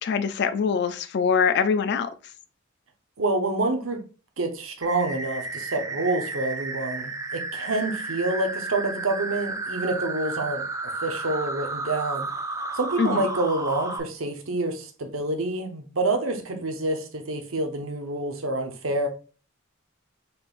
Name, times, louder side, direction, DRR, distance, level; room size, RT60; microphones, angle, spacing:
voice 1, 0.0-2.1 13.0-13.2, left 6 dB, 55° left, 0.4 m, -23 dB
voice 2, 3.2-4.0 4.4-12.3 12.7-19.1, right 2 dB, 90° right, 0.9 m, -27 dB
sound 1, 4.8-14.0, right 3 dB, 15° right, 0.5 m, -32 dB
4.2 x 3.6 x 2.5 m
head